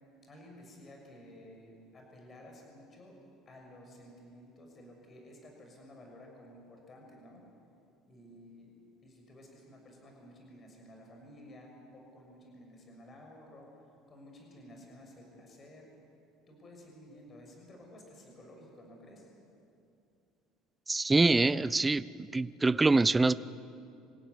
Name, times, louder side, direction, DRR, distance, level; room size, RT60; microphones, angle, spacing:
voice 1, 0.2-3.2 3.4-7.4 8.1-8.7 9.0-13.7 14.1-15.9 16.5-19.3, left 1 dB, 25° left, 1 dB, 6.6 m, -53 dB
voice 2, 20.9-22.0 22.3-23.3, right 3 dB, 10° right, 16 dB, 0.6 m, -25 dB
27.0 x 16.0 x 9.7 m, 2.6 s
cardioid pair, 135°, 0 cm